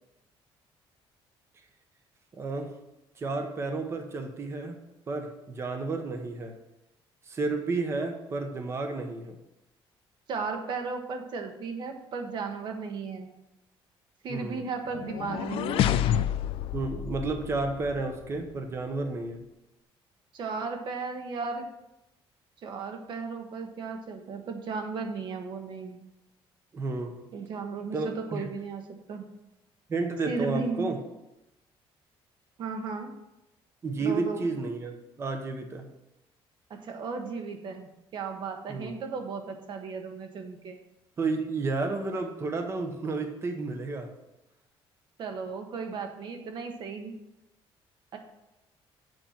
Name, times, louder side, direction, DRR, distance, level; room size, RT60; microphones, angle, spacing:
voice 1, 2.3-2.7 3.2-4.8 5.1-6.5 7.3-9.4 14.3-14.6 16.7-19.4 26.7-27.2 27.9-28.5 29.9-31.0 33.8-35.9 38.7-38.9 41.2-44.1, right 3 dB, 25° right, 5 dB, 1.0 m, -31 dB
voice 2, 10.3-13.3 14.2-16.0 20.3-21.7 22.6-26.0 27.3-28.8 29.1-29.3 30.2-31.0 32.6-33.1 34.0-34.5 36.7-40.8 45.2-47.1 48.1-48.2, right 4 dB, 50° right, 5 dB, 1.3 m, -35 dB
sound 1, 14.9-18.1, left 11 dB, 65° left, 0.4 m, -29 dB
7.8 x 5.8 x 7.4 m, 0.92 s
cardioid pair, 160°, 10 cm